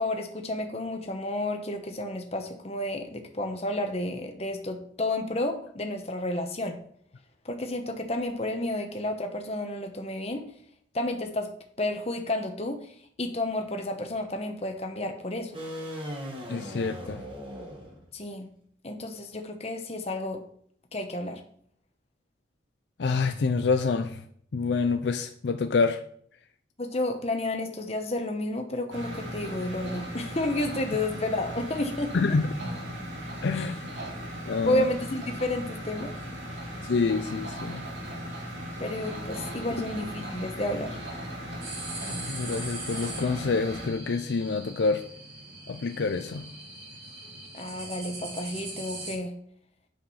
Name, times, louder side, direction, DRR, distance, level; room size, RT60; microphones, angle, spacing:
voice 1, 0.0-6.8 7.4-10.4 10.9-11.5 11.8-12.8 13.2-15.5 18.1-18.5 18.8-20.4 20.9-21.4 26.8-32.1 33.5-33.7 34.7-36.1 38.8-41.0 47.5-49.3, left 1 dB, 35° left, 1.0 m, -31 dB
sound 1, 15.5-18.2, equal, 30° right, 1.9 m, -38 dB
voice 2, 16.5-17.2 23.0-24.2 24.5-26.0 32.1-32.4 33.4-33.8 34.5-34.8 36.8-37.8 42.3-45.0 45.7-46.4, left 4 dB, 65° left, 0.5 m, -27 dB
sound 2, 28.9-43.9, equal, 80° right, 2.9 m, -37 dB
sound 3, 41.6-49.1, right 2 dB, 55° right, 3.8 m, -41 dB
8.7 x 5.0 x 5.6 m
head